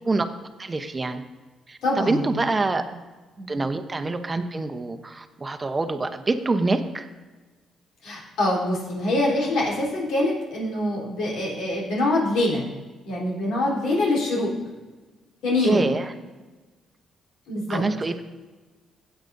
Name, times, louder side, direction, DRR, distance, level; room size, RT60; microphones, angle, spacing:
voice 1, 0.6-1.2 1.7-2.8 3.5-7.1 15.6-16.1 17.7-18.2, right 3 dB, 25° right, 8 dB, 0.9 m, -25 dB
voice 2, 1.8-2.3 2.7-2.8 3.4-3.5 8.0-12.6 13.1-14.5 15.4-15.9 17.5-17.8, left 1 dB, 85° left, -4 dB, 3.7 m, -24 dB
16.0 x 8.2 x 2.6 m, 1.3 s
cardioid pair, 90°, 0 cm